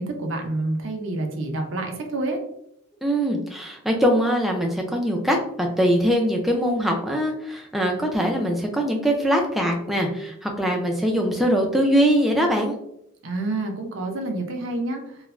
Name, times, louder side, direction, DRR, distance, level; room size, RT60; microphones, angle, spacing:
voice 1, 0.0-2.4 13.2-15.0, right 2 dB, 65° right, 3 dB, 0.5 m, -28 dB
voice 2, 3.0-12.8, equal, ahead, 1 dB, 0.3 m, -22 dB
3.1 x 2.1 x 2.3 m, 0.76 s
head